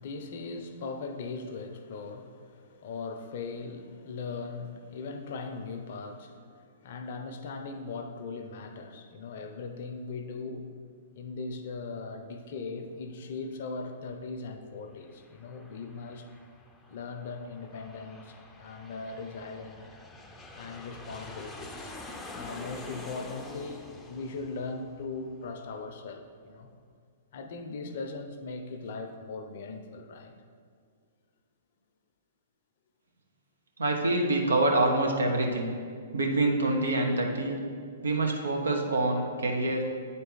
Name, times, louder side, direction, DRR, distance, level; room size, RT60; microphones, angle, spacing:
voice 1, 0.0-10.7 11.2-16.3 16.9-19.9 20.5-21.9 22.3-26.7 27.3-30.3, left 4 dB, 55° left, 7 dB, 0.6 m, -39 dB
Aircraft, 14.8-26.0, left 2 dB, 10° left, 0.5 m, -47 dB
voice 2, 33.8-35.7 36.1-37.6 38.0-39.9, right 2 dB, 80° right, 1 dB, 0.9 m, -26 dB
8.6 x 4.0 x 3.9 m, 2.1 s
figure-of-eight pair, 115°, 0 cm